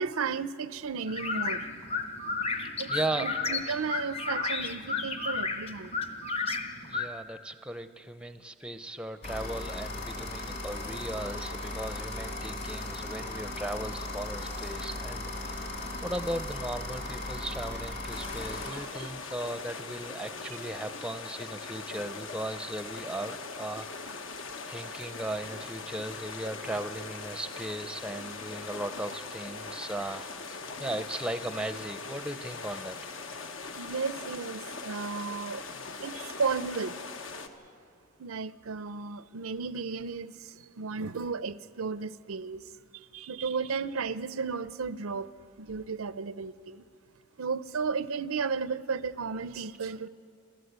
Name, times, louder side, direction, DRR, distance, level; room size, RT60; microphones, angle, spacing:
voice 1, 0.0-1.6 2.8-2.9 3.2-5.9 19.0-19.1 20.5-20.6 33.8-35.6 36.0-37.0 38.2-45.3 45.6-46.8 47.4-50.1, right 5 dB, 85° right, 0.6 m, -34 dB
sound 1, 1.1-7.1, left 4 dB, 30° left, 0.8 m, -33 dB
voice 2, 2.9-3.3 6.8-24.3 24.7-33.1, right 1 dB, 5° right, 0.5 m, -37 dB
sound 2, 9.2-18.7, left 2 dB, 50° left, 3.7 m, -37 dB
sound 3, 18.1-37.5, left 4 dB, 70° left, 1.2 m, -41 dB
27.5 x 13.5 x 8.1 m
head